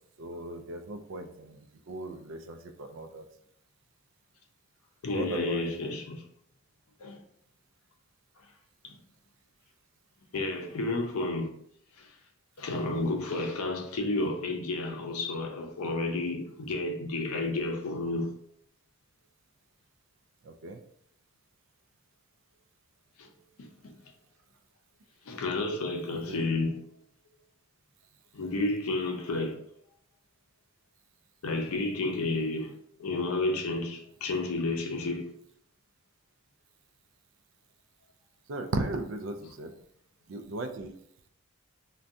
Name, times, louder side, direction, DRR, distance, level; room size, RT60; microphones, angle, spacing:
voice 1, 0.2-3.2 5.1-5.8 20.4-20.8 26.1-26.5 38.5-39.7 40.3-40.9, right 2 dB, 60° right, 0.3 m, -37 dB
voice 2, 5.0-6.2 7.0-7.2 8.8-9.0 10.3-11.6 12.0-12.1 12.6-18.3 23.2-23.3 25.3-26.8 28.3-29.6 31.4-32.7 33.0-35.3, left 2 dB, 85° left, 0.5 m, -31 dB
2.6 x 2.2 x 3.5 m
head